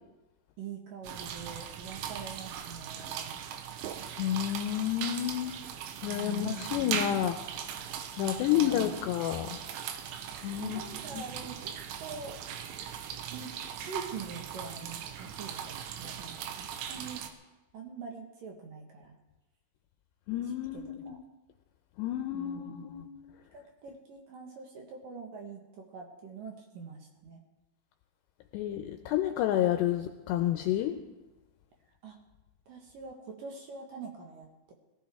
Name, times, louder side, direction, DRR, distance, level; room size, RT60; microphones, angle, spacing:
voice 1, 0.6-3.4 6.0-6.8 8.2-8.9 10.6-12.4 13.3-17.3 17.7-19.2 21.0-21.2 22.3-23.1 23.5-27.4 32.0-32.2 32.7-34.7, right 5 dB, 60° right, 1 dB, 2.6 m, -44 dB
sound 1, 1.0-17.3, right 8 dB, 85° right, 3.4 m, -39 dB
voice 2, 4.2-5.6 6.0-7.4 8.2-9.6 10.4-10.8 11.1-11.3 20.3-21.2 22.0-23.1 28.5-31.0, left 11 dB, 80° left, 6 dB, 2.7 m, -30 dB
20.5 x 15.5 x 3.6 m, 1.1 s
omnidirectional pair, 5.3 m